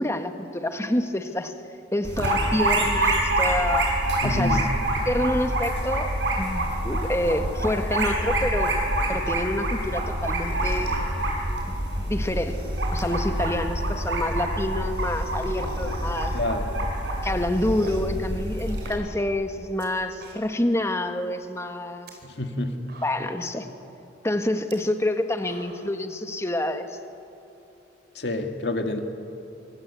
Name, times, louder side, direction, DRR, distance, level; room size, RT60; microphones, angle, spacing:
voice 1, 0.0-1.5 1.9-3.9 4.2-4.6 5.0-6.1 6.4-8.7 9.1-11.0 11.7-11.8 12.0-12.6 12.9-16.3 17.2-22.1 23.0-23.7 24.2-26.9, left 1 dB, 15° left, 7 dB, 1.4 m, -27 dB
sound 1, 2.0-18.9, right 1 dB, 85° right, 7.3 m, -26 dB
voice 2, 4.2-4.6 16.3-16.9 22.2-22.9 28.2-29.0, left 1 dB, 65° left, 5 dB, 2.1 m, -28 dB
sound 2, 10.4-11.1 12.1-13.2 13.5-13.6 13.8-13.9 14.1-14.2 14.5-16.7 17.1-18.2 18.6-19.9 20.1-20.7 21.1-21.2 21.8-22.1 22.6-22.7 22.9-23.5 24.6-24.7 25.2-26.0, right 1 dB, 60° right, 4.5 m, -45 dB
26.0 x 24.5 x 8.3 m, 2.7 s
head